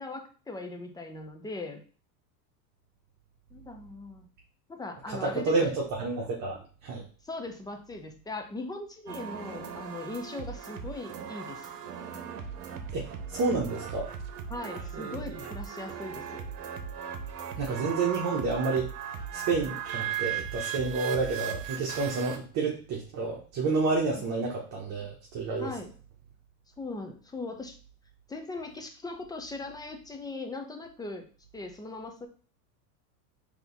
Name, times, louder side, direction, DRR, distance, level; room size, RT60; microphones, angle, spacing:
voice 1, 0.0-1.8 3.5-4.3 4.7-5.8 7.2-11.7 14.5-16.5 22.2-22.3 24.2-24.3 25.6-25.9 26.8-27.8 28.3-31.3 31.5-32.3, left 2 dB, 10° left, 5 dB, 0.5 m, -39 dB
voice 2, 5.1-7.1 12.9-14.1 14.9-15.2 17.6-18.9 19.3-25.7, right 3 dB, 40° right, -2 dB, 1.1 m, -30 dB
sound 1, 9.1-22.4, right 8 dB, 70° right, 1.0 m, -38 dB
3.9 x 3.0 x 4.0 m, 0.39 s
supercardioid pair, 110°, 49 cm